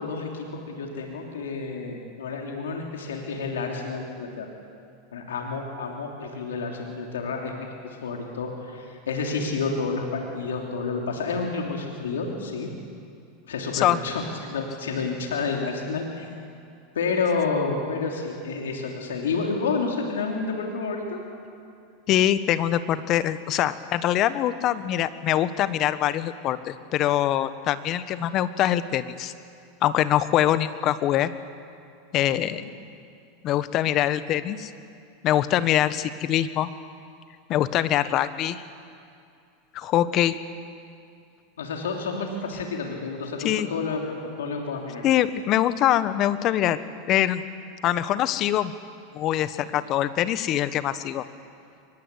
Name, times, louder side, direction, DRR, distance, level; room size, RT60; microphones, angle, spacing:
voice 1, 0.0-4.5 5.1-7.7 8.0-12.7 13.5-16.3 16.9-21.2 32.6-32.7 41.6-44.0 44.4-45.0, left 4 dB, 85° left, 1 dB, 3.1 m, -29 dB
voice 2, 22.1-29.3 29.8-31.3 32.1-32.6 33.4-34.7 35.2-36.7 37.5-38.6 39.7-40.4 43.4-43.7 45.0-46.8 47.1-47.4 47.8-48.7 49.1-51.2, left 12 dB, 45° left, 13 dB, 1.2 m, -23 dB
23.5 x 21.0 x 8.4 m, 2.5 s
hypercardioid pair, 95°, 0 cm